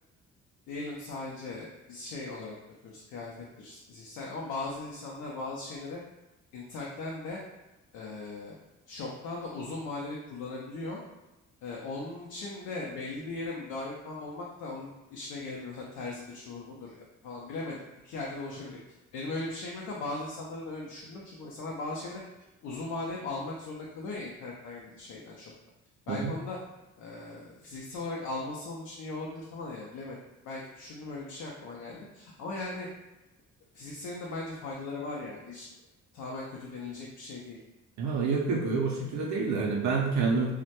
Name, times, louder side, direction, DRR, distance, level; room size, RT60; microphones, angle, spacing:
voice 1, 0.7-2.5 2.8-6.0 6.5-7.4 7.9-8.5 8.9-11.0 11.6-17.8 18.0-18.8 19.1-22.2 22.6-25.5 26.1-26.6 27.0-30.2 30.4-32.9 33.7-35.7 36.1-37.6, left 2 dB, 75° left, -3 dB, 0.5 m, -38 dB
voice 2, 38.0-40.5, right 4 dB, 65° right, -1 dB, 0.5 m, -28 dB
2.1 x 2.1 x 2.8 m, 1.0 s
cardioid pair, 90°, 30 cm